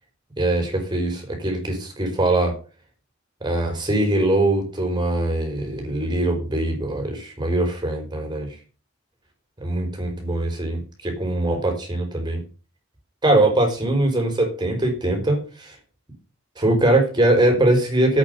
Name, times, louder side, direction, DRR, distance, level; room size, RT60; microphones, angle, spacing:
voice 1, 0.4-2.5 3.4-8.5 9.6-12.4 13.2-15.7 16.6-18.2, right 1 dB, 20° right, 2 dB, 5.0 m, -22 dB
8.8 x 8.8 x 6.9 m, 0.35 s
head